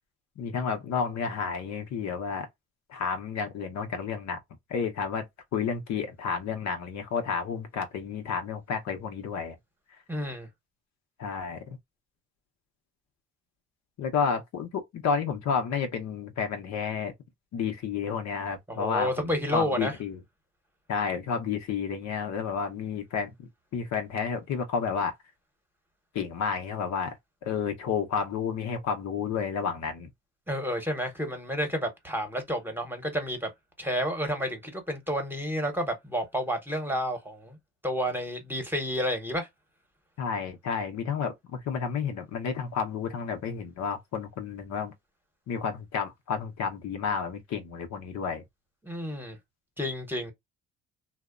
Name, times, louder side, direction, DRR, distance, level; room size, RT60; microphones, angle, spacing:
voice 1, 0.4-2.5 2.9-4.4 4.7-5.2 5.5-9.5 11.2-11.8 14.0-17.1 17.5-20.2 20.9-23.3 23.7-25.1 26.1-27.2 27.4-30.1 40.2-44.9 45.5-48.4, left 6 dB, 65° left, 0.7 m, -31 dB
voice 2, 10.1-10.5 18.7-19.9 30.5-33.5 33.8-37.6 37.8-39.5 48.8-49.4 49.8-50.3, equal, 5° right, 0.9 m, -30 dB
2.8 x 2.1 x 2.4 m
cardioid pair, 90°, 30 cm